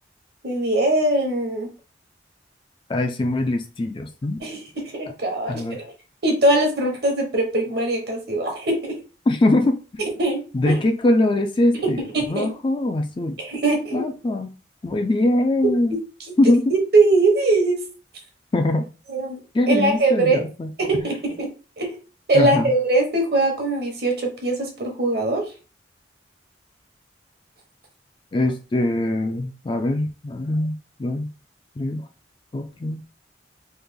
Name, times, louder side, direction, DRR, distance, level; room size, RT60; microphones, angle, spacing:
voice 1, 0.4-1.7 4.4-4.6 4.9-5.6 6.2-9.0 10.2-10.8 11.8-12.5 13.4-14.0 16.7-17.8 19.1-19.4 19.7-20.4 20.8-21.5 21.8-22.0 22.3-25.4, right 2 dB, 55° right, 1.1 m, -21 dB
voice 2, 2.9-4.4 5.5-5.8 9.3-10.0 10.5-12.0 12.3-13.4 13.9-14.5 14.8-16.0 16.4-16.7 18.5-18.9 19.5-20.7 21.0-21.1 22.3-22.7 28.3-31.3 31.8-32.0 32.5-33.0, left 1 dB, 25° left, 0.3 m, -22 dB
3.3 x 2.4 x 3.5 m
head